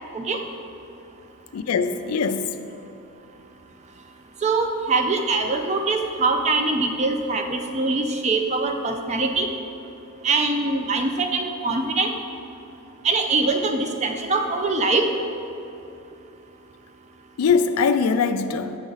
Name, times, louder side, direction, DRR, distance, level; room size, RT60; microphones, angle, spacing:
voice 1, 1.5-2.5 17.4-18.8, left 5 dB, 80° left, 0.4 m, -22 dB
voice 2, 4.4-9.5 10.2-12.1 13.0-15.1, right 3 dB, 30° right, 0.5 m, -23 dB
7.7 x 6.2 x 4.0 m
head